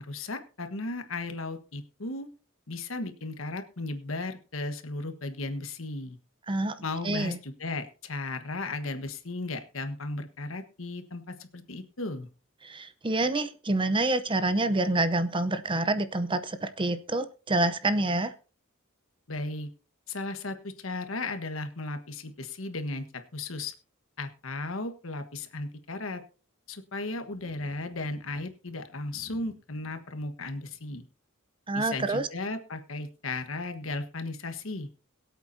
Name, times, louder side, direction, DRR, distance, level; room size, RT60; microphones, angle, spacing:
voice 1, 0.0-2.3 2.7-6.2 6.8-12.3 19.3-19.7 20.1-23.0 23.3-23.7 24.2-26.2 26.7-31.0 31.7-34.9, left 2 dB, 75° left, 8 dB, 1.4 m, -35 dB
voice 2, 7.0-7.4 12.6-18.3 31.7-32.3, right 2 dB, 25° right, 12 dB, 0.7 m, -27 dB
22.5 x 8.2 x 2.8 m, 0.35 s
head